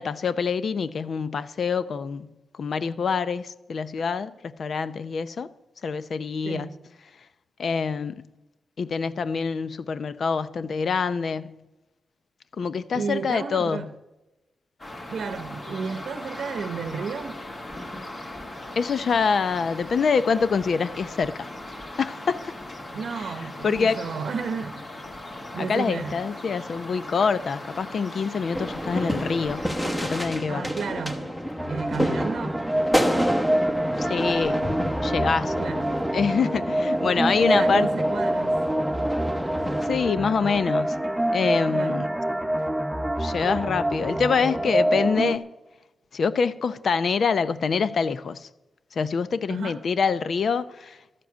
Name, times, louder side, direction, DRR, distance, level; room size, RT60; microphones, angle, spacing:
voice 1, 0.0-5.5 5.8-6.7 7.6-8.2 8.8-11.5 12.6-13.9 18.8-21.5 22.0-22.5 23.2-23.3 23.6-24.0 25.6-29.7 30.0-30.6 34.0-34.7 35.0-35.6 36.1-37.9 39.8-41.0 41.3-42.1 43.2-45.5 46.1-48.5 48.9-51.2, left 5 dB, 55° left, 0.6 m, -25 dB
voice 2, 6.4-6.8 12.9-13.9 15.1-17.4 22.9-25.0 25.5-26.2 30.5-31.2 31.7-32.6 35.6-35.9 37.3-38.6 41.7-42.1 49.5-49.8, right 5 dB, 70° right, 0.8 m, -32 dB
sound 1, 14.8-30.3, left 1 dB, 30° left, 2.0 m, -39 dB
sound 2, 28.5-39.9, equal, 10° left, 1.1 m, -29 dB
sound 3, 31.6-45.4, right 1 dB, 5° right, 0.6 m, -26 dB
12.5 x 7.6 x 9.3 m
wide cardioid pair, 155°, 0 cm